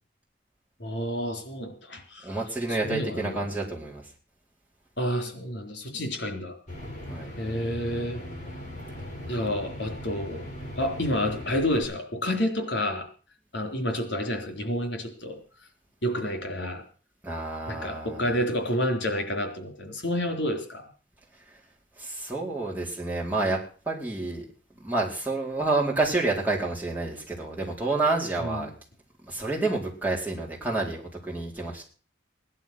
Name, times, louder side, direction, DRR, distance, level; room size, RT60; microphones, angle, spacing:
voice 1, 0.8-2.4 2.7-3.5 5.0-6.5 7.4-8.2 9.3-10.4 10.8-13.1 13.5-15.4 16.0-16.8 17.7-20.8 28.4-28.7, equal, 65° left, 5 dB, 4.1 m, -29 dB
voice 2, 2.2-4.0 7.1-7.3 17.2-18.2 22.0-23.6 23.8-24.4 24.8-28.7 29.2-31.8, right 3 dB, 10° right, -3 dB, 4.5 m, -29 dB
sound 1, 6.7-11.8, left 1 dB, 40° left, 7.9 m, -39 dB
17.0 x 11.5 x 6.3 m, 0.40 s
head